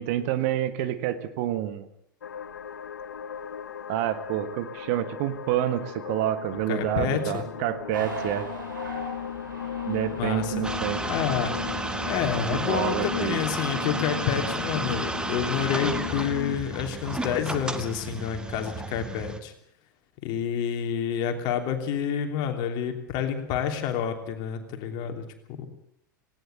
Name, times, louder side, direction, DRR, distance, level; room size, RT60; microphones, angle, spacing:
voice 1, 0.0-1.9 3.9-8.5 9.8-11.0 12.5-13.4, right 12 dB, 45° right, 11 dB, 1.6 m, -28 dB
sound 1, 2.2-16.6, left 8 dB, 70° left, 0.9 m, -36 dB
voice 2, 6.7-7.4 10.2-10.5 11.0-11.5 12.0-19.5 20.2-25.7, left 8 dB, 40° left, 5 dB, 3.1 m, -29 dB
sound 2, 7.9-13.4, right 1 dB, 75° right, 7.6 m, -41 dB
sound 3, 10.6-19.4, right 2 dB, 10° right, 1.6 m, -32 dB
19.0 x 17.5 x 8.0 m, 0.73 s
figure-of-eight pair, 90°, 11 cm